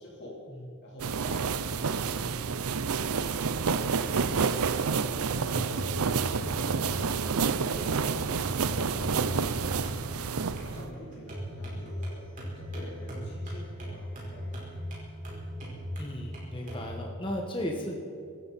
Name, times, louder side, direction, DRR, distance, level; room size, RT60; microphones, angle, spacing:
voice 1, 0.0-0.4 0.8-3.2 3.5-6.0 6.5-6.9 7.2-9.7 10.4-12.3 12.6-14.8, left 1 dB, 50° left, -5 dB, 3.7 m, -48 dB
sound 1, 1.0-10.9, right 5 dB, 80° right, 0.6 m, -29 dB
sound 2, 5.4-16.9, equal, 35° right, 4.9 m, -39 dB
voice 2, 16.0-18.0, left 1 dB, 25° left, 1 dB, 1.6 m, -35 dB
24.5 x 13.0 x 4.3 m, 2.3 s
head